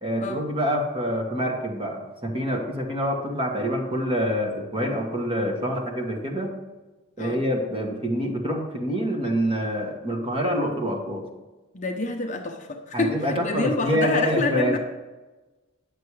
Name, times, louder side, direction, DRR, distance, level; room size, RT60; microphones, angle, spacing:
voice 1, 0.0-6.5 7.2-11.2 12.9-14.8, equal, 25° right, 1 dB, 1.5 m, -26 dB
voice 2, 11.7-14.8, left 3 dB, 35° left, 3 dB, 0.8 m, -27 dB
9.9 x 6.8 x 4.8 m, 1.2 s
head